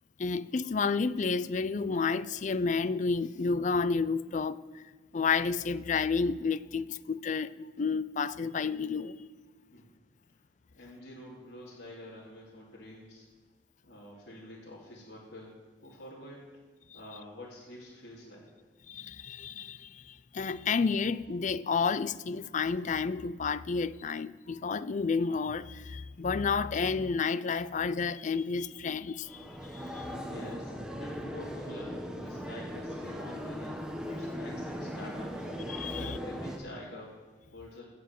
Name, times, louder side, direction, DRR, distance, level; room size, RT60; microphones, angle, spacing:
voice 1, 0.2-4.8 5.1-9.2 18.9-29.5 29.7-30.1 35.7-36.2, left 5 dB, 45° left, 0.4 m, -31 dB
voice 2, 10.7-13.3 13.8-15.5 15.8-16.5 16.9-18.5 30.3-35.5 35.9-37.2 37.5-37.9, left 1 dB, 80° left, 2.9 m, -47 dB
sound 1, 29.2-36.6, equal, 5° right, 1.5 m, -38 dB
16.5 x 6.0 x 7.7 m
head